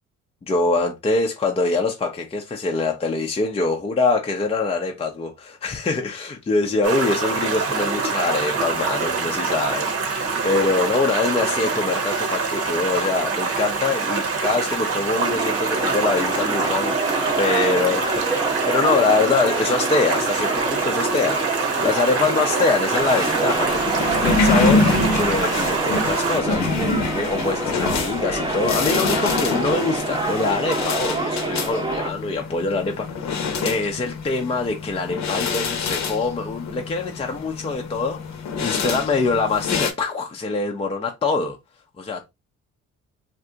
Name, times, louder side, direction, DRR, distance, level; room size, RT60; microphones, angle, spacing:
voice 1, 0.5-26.7 27.1-33.3 33.6-41.6 42.0-42.3, left 3 dB, 20° left, 0.5 m, -24 dB
Stream, 6.8-26.4, right 4 dB, 50° right, 1.0 m, -25 dB
sound 1, 15.2-32.1, right 2 dB, 15° right, 0.7 m, -27 dB
sound 2, 23.0-39.9, left 4 dB, 65° left, 0.8 m, -26 dB
2.6 x 2.3 x 3.8 m
cardioid pair, 90°, 30 cm